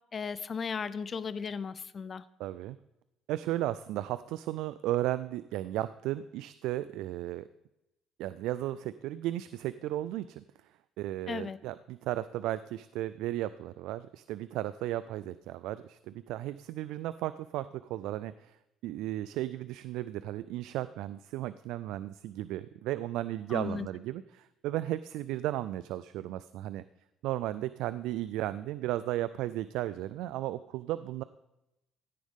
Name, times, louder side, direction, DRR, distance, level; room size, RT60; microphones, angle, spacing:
voice 1, 0.1-2.2 11.3-11.6 23.5-23.9, left 5 dB, 25° left, 16 dB, 0.4 m, -36 dB
voice 2, 2.4-2.8 3.3-7.5 8.2-10.4 11.0-18.6 18.8-26.8 27.2-31.2, right 14 dB, 75° right, 14 dB, 0.3 m, -35 dB
15.5 x 10.0 x 3.6 m, 0.91 s
cardioid pair, 165°, 0 cm